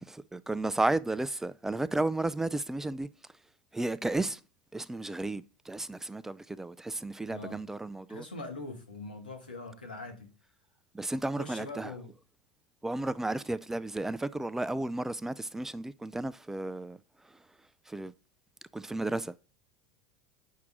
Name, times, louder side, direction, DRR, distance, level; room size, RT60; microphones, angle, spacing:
voice 1, 0.3-3.1 3.7-4.4 4.7-8.3 10.9-11.9 12.8-17.0 17.9-18.1 18.7-19.3, right 2 dB, 10° right, 0.4 m, -33 dB
voice 2, 7.3-7.6 8.1-10.3 11.4-12.1, left 2 dB, 90° left, 1.9 m, -42 dB
8.4 x 5.9 x 3.7 m
hypercardioid pair, 80°, 5 cm